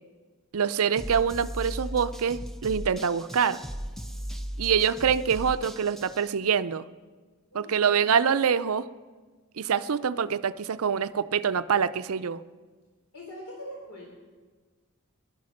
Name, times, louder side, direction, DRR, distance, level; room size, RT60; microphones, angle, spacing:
voice 1, 0.5-3.6 4.6-6.8 7.5-8.8 9.6-12.4, right 7 dB, 80° right, 13 dB, 0.5 m, -25 dB
sound 1, 1.0-6.3, equal, ahead, 0.4 m, -37 dB
voice 2, 7.5-8.0 13.1-14.2, equal, 75° left, -2 dB, 3.3 m, -42 dB
18.0 x 11.5 x 6.5 m, 1.4 s
head